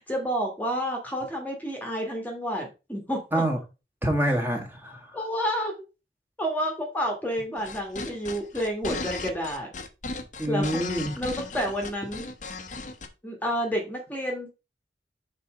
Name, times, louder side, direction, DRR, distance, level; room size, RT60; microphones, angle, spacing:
voice 1, 0.1-3.4 5.1-5.7 6.4-9.7 10.5-10.8 11.2-12.3 13.2-14.5, equal, 10° left, 1.4 m, -30 dB
voice 2, 4.0-5.2 10.4-11.1, right 1 dB, 10° right, 1.6 m, -26 dB
sound 1, 7.6-13.1, left 3 dB, 45° left, 0.9 m, -36 dB
6.9 x 4.2 x 4.8 m
head